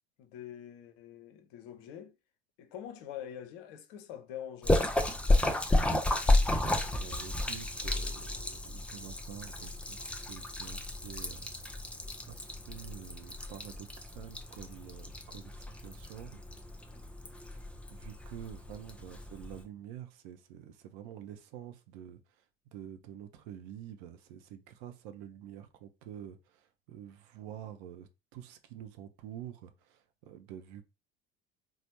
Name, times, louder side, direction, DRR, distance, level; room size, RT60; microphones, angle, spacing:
voice 1, 0.2-2.1 2.6-4.9, left 10 dB, 50° left, 0.6 m, -45 dB
Splash splatter, 4.6-19.6, left 1 dB, 5° left, 0.4 m, -32 dB
voice 2, 6.7-11.8 12.2-16.4 17.4-22.4 22.7-30.8, right 10 dB, 55° right, 0.6 m, -48 dB
4.1 x 2.1 x 2.8 m
figure-of-eight pair, 70°, 31 cm